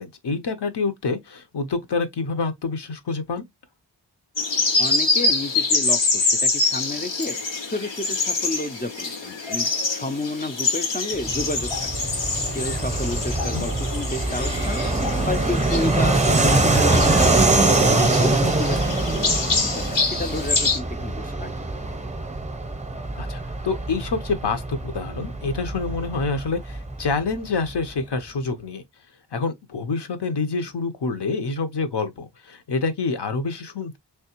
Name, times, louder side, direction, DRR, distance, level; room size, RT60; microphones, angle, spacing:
voice 1, 0.0-3.4 13.5-13.7 19.4-19.6 23.2-28.8 29.3-34.0, left 4 dB, 70° left, 0.8 m, -27 dB
sound 1, 4.4-20.8, left 3 dB, 90° left, 1.2 m, -25 dB
voice 2, 4.8-7.4 7.7-11.9 12.5-14.8 15.2-17.9 18.2-19.5 19.8-21.5, left 2 dB, 25° left, 0.3 m, -31 dB
Fixed-wing aircraft airplane, 11.2-27.4, right 2 dB, 15° right, 0.6 m, -23 dB
3.4 x 3.2 x 2.9 m
wide cardioid pair, 85°, 42 cm